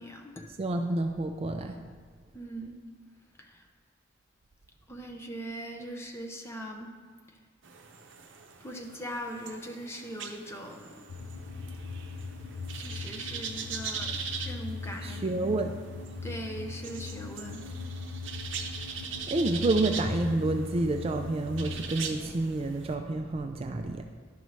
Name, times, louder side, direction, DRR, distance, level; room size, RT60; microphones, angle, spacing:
voice 1, 0.0-0.5 2.3-2.7 3.4-3.7 4.9-6.9 8.6-11.1 12.8-14.2 14.4-15.2 16.2-17.7, equal, 15° left, 2 dB, 0.7 m, -40 dB
voice 2, 0.6-1.8 15.0-15.8 19.2-24.0, right 2 dB, 30° right, 5 dB, 0.3 m, -29 dB
sound 1, 7.6-22.9, right 6 dB, 70° right, 0.7 m, -41 dB
sound 2, 11.1-21.9, left 4 dB, 65° left, 0.4 m, -39 dB
11.0 x 5.4 x 3.1 m, 1.5 s
head